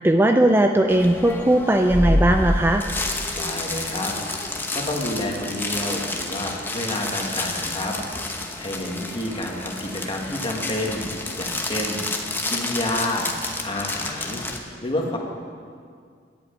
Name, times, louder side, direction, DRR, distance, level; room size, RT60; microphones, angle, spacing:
voice 1, 0.0-2.9, right 1 dB, 10° right, 5 dB, 0.4 m, -18 dB
sound 1, 0.9-14.6, left 2 dB, 10° left, 1.0 m, -29 dB
voice 2, 3.4-4.1 4.7-8.0 8.3-11.1 11.4-12.0 12.5-13.3 13.6-15.2, left 1 dB, 30° left, 0 dB, 1.8 m, -29 dB
11.0 x 8.5 x 8.7 m, 2.1 s
head